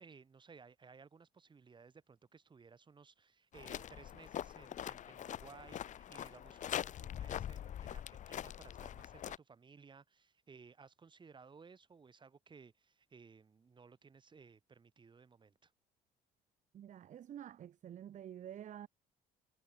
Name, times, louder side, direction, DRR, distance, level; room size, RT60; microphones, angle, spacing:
voice 1, 0.0-15.7, right 5 dB, 30° right, 2.8 m, -59 dB
sound 1, 3.5-9.4, left 10 dB, 50° left, 0.7 m, -43 dB
voice 2, 16.7-18.9, right 10 dB, 45° right, 0.8 m, -49 dB
cardioid pair, 110°, 17 cm